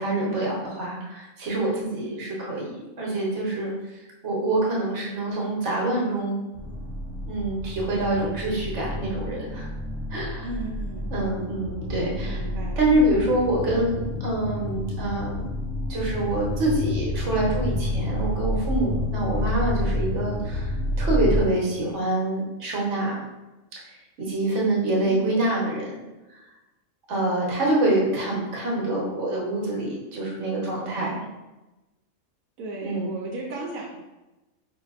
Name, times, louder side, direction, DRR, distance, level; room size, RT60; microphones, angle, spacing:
voice 1, 0.0-6.4 7.2-9.7 10.1-10.4 11.1-12.4 12.8-15.4 15.9-23.2 24.2-26.0 27.1-31.2 32.8-33.1, right 1 dB, 60° right, -3 dB, 1.2 m, -26 dB
voice 2, 2.0-2.3 10.4-11.1 12.2-12.8 25.1-25.3 32.6-33.9, right 2 dB, 85° right, -2 dB, 1.0 m, -35 dB
sound 1, 6.5-21.4, left 1 dB, 10° right, 0.9 m, -29 dB
4.5 x 2.6 x 2.3 m, 1.0 s
omnidirectional pair, 1.4 m